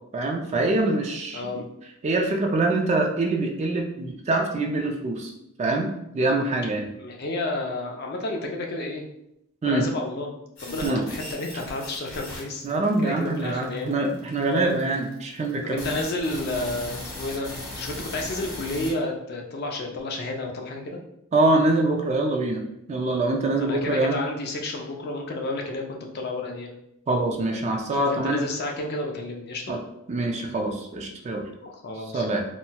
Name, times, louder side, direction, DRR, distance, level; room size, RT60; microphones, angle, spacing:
voice 1, 0.1-1.7 2.0-5.3 5.6-6.9 9.6-9.9 10.8-11.0 12.6-16.0 21.3-24.2 27.1-28.4 29.7-29.8 30.1-31.4 32.1-32.4, right 2 dB, 30° right, 2 dB, 0.3 m, -24 dB
voice 2, 7.0-9.0 9.6-10.3 10.6-12.7 13.0-13.9 15.6-21.0 23.6-26.7 28.0-29.8 31.6-32.3, left 2 dB, 50° left, 1 dB, 0.5 m, -31 dB
sound 1, 10.6-18.9, left 2 dB, 90° left, 1.1 m, -38 dB
4.1 x 2.1 x 2.2 m, 0.81 s
head